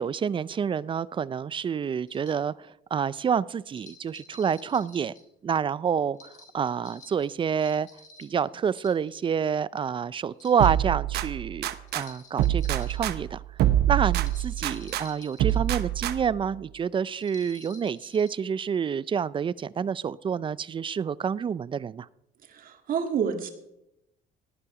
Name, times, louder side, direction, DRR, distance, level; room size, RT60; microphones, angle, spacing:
voice 1, 0.0-2.5 2.9-5.1 5.4-7.9 8.2-11.7 11.9-13.4 13.9-22.1, right 7 dB, 30° right, 20 dB, 0.4 m, -28 dB
sound 1, 2.1-2.4 3.7-5.2 6.1-8.4 8.8-9.4 10.3-10.9 11.9-13.0 14.1-15.8 17.2-18.3, left 2 dB, 45° left, 4.0 m, -51 dB
sound 2, 10.6-12.0 12.4-15.0 15.4-16.4, right 13 dB, 75° right, 0.9 m, -26 dB
voice 2, 22.5-23.5, right 7 dB, 55° right, 5 dB, 2.1 m, -28 dB
17.5 x 9.8 x 4.9 m, 0.84 s
cardioid pair, 110°, 17 cm